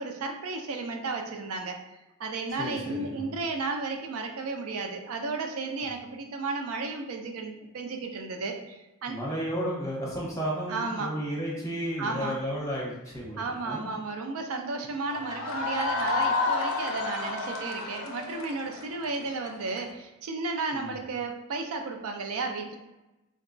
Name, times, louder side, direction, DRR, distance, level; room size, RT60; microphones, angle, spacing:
voice 1, 0.0-1.8 2.2-9.2 10.7-11.1 12.0-12.4 13.4-22.8, right 3 dB, 70° right, 4 dB, 0.4 m, -33 dB
voice 2, 2.6-3.3 9.1-13.4 13.7-13.9 20.7-20.9, equal, 15° left, -5 dB, 0.8 m, -33 dB
sound 1, 15.1-19.8, left 3 dB, 65° left, 0.5 m, -30 dB
3.9 x 2.2 x 2.5 m, 1.0 s
head